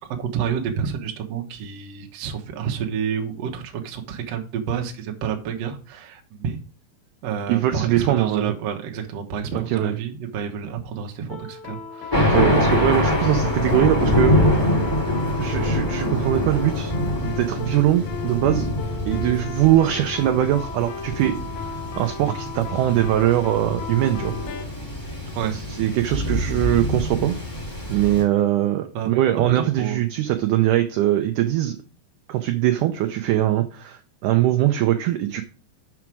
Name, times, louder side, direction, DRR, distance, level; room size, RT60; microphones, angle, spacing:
voice 1, 0.0-6.6 7.2-12.3 25.3-25.6 28.9-29.1 29.4-30.1, right 7 dB, 65° right, 3 dB, 1.6 m, -29 dB
voice 2, 7.5-8.5 9.5-9.9 12.3-14.4 15.4-16.9 17.2-18.7 19.1-21.4 22.0-24.3 25.5-27.4 27.9-31.8 32.3-35.4, right 13 dB, 80° right, 6 dB, 1.8 m, -21 dB
sound 1, 11.3-24.7, left 5 dB, 75° left, 1.7 m, -36 dB
Thunder, 12.1-28.2, left 1 dB, 5° left, 1.6 m, -24 dB
7.3 x 6.1 x 4.6 m, 0.37 s
omnidirectional pair, 4.3 m